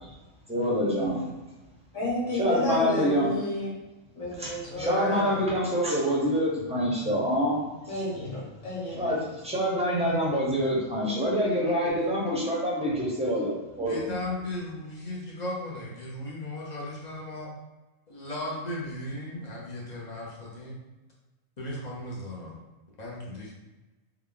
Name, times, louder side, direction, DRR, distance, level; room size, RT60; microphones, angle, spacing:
voice 1, 0.5-1.2 2.4-3.3 4.4-4.5 4.8-7.6 9.0-14.1, equal, 5° right, -4 dB, 0.7 m, -26 dB
voice 2, 1.9-3.7 4.1-5.0 7.9-9.2, left 1 dB, 75° left, -6 dB, 1.5 m, -31 dB
voice 3, 4.7-5.4 11.9-12.0 13.9-17.5 18.1-20.8 21.6-22.6 23.0-23.6, left 1 dB, 40° left, -5 dB, 0.8 m, -36 dB
3.4 x 2.3 x 3.7 m, 1.1 s
omnidirectional pair, 1.3 m